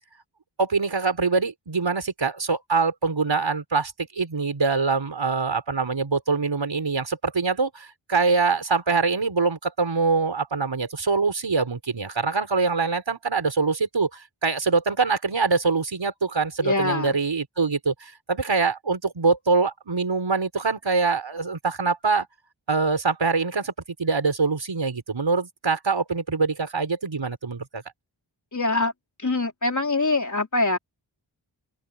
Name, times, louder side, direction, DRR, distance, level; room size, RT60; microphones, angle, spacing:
voice 1, 0.6-22.3 22.7-23.7 24.0-27.8, right 4 dB, 65° right, 4.8 m, -24 dB
voice 2, 16.6-17.2 28.5-28.9 29.2-30.8, left 2 dB, 40° left, 3.9 m, -24 dB
open air
wide cardioid pair, 75°, 47 cm